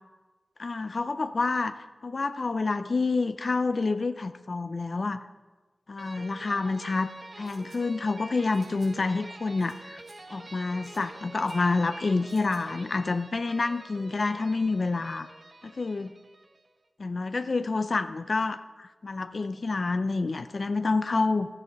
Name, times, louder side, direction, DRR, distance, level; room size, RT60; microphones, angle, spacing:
voice 1, 0.6-5.2 5.9-7.1 7.4-10.0 10.3-15.3 15.6-16.1 17.0-21.5, left 3 dB, 60° left, 11 dB, 0.5 m, -28 dB
sound 1, 6.0-16.7, right 2 dB, 55° right, 0.9 m, -47 dB
sound 2, 7.4-7.8 8.5-8.9 9.6-9.7 10.0-10.2 10.8-11.0 11.4-11.6 12.3-12.6, right 2 dB, 80° right, 4.3 m, -56 dB
12.5 x 9.9 x 4.0 m, 1.2 s
cardioid pair, 45°, 0 cm